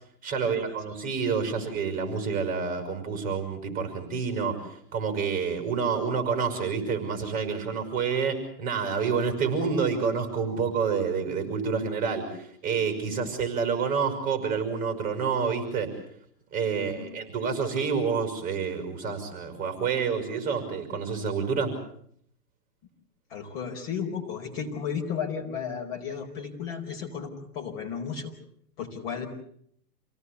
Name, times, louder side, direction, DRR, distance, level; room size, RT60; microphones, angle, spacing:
voice 1, 0.2-15.9 16.5-21.7, right 5 dB, 15° right, 6 dB, 5.7 m, -28 dB
voice 2, 16.8-17.2 23.3-28.3 28.8-29.3, left 7 dB, 35° left, 2 dB, 4.6 m, -34 dB
28.5 x 18.0 x 8.3 m, 0.67 s
hypercardioid pair, 160°, 49 cm